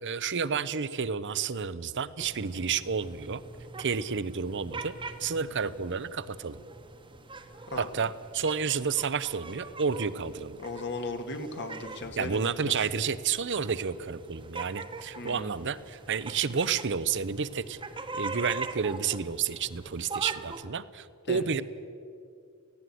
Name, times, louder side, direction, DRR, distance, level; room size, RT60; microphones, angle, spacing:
voice 1, 0.0-3.4 3.8-4.9 5.2-6.6 7.8-10.6 12.2-17.8 18.1-21.6, right 6 dB, 55° right, 16 dB, 0.7 m, -30 dB
sound 1, 2.2-20.7, right 3 dB, 25° right, 1.3 m, -43 dB
voice 2, 7.7-8.1 10.6-12.7 15.1-15.6 21.3-21.5, left 2 dB, 50° left, 6 dB, 1.8 m, -37 dB
17.5 x 16.0 x 9.4 m, 2.4 s
head